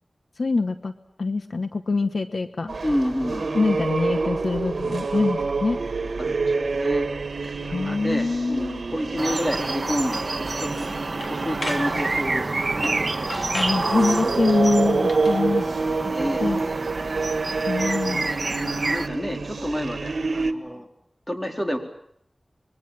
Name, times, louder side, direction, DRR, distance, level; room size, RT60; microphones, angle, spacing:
voice 1, 0.4-0.9 1.2-2.7 3.5-5.8 7.7-8.8 13.5-16.1 16.4-16.6 17.7-18.3, left 3 dB, 70° left, 10 dB, 1.2 m, -24 dB
sound 1, 2.7-20.5, right 4 dB, 85° right, 1.5 m, -27 dB
voice 2, 2.8-3.6 6.2-7.1 7.6-11.0 11.3-13.2 14.2-14.4 16.1-16.4 18.7-20.9 21.3-21.8, equal, 15° left, 4 dB, 3.9 m, -29 dB
sound 2, 9.2-19.1, right 3 dB, 50° right, 1.3 m, -28 dB
sound 3, 10.1-10.2 10.6-10.9 11.2-11.9 12.8-13.0 13.3-13.8 15.0-15.4, left 1 dB, 50° left, 3.4 m, -34 dB
26.0 x 22.5 x 8.8 m, 0.69 s
wide cardioid pair, 70°, 0 cm